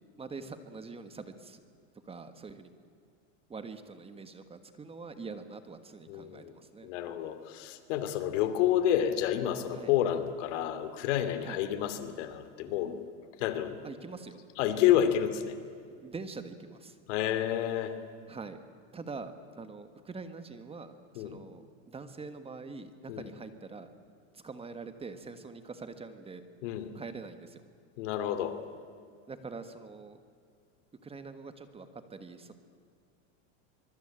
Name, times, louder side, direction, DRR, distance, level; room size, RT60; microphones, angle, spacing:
voice 1, 0.2-1.6 2.1-2.7 3.5-6.9 9.7-9.9 11.4-11.6 13.8-14.4 15.8-16.9 18.3-18.6 18.9-23.9 24.3-26.4 26.9-27.6 29.3-30.2 31.0-32.5, right 4 dB, 15° right, 10 dB, 1.5 m, -44 dB
voice 2, 6.1-6.5 6.8-13.0 13.4-13.8 14.6-15.6 17.1-18.0 21.1-21.4 23.1-23.3 26.6-26.9 28.0-28.6, left 11 dB, 70° left, 11 dB, 2.8 m, -29 dB
24.5 x 23.5 x 8.9 m, 2.3 s
supercardioid pair, 140°, 37 cm